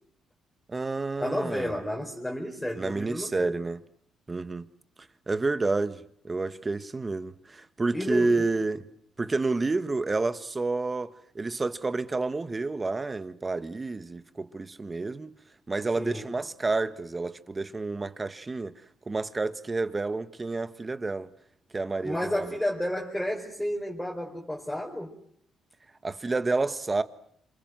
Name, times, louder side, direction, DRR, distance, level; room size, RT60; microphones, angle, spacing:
voice 1, 0.7-1.7 2.8-3.8 4.3-4.7 5.3-8.8 9.2-15.3 15.7-18.7 19.1-21.3 21.7-22.5 26.0-27.0, right 3 dB, 25° right, 1.6 m, -29 dB
voice 2, 1.2-3.5 7.9-8.4 16.0-16.3 22.0-25.1, left 1 dB, 10° left, 4.7 m, -31 dB
28.0 x 26.0 x 7.8 m
cardioid pair, 90°, 0 cm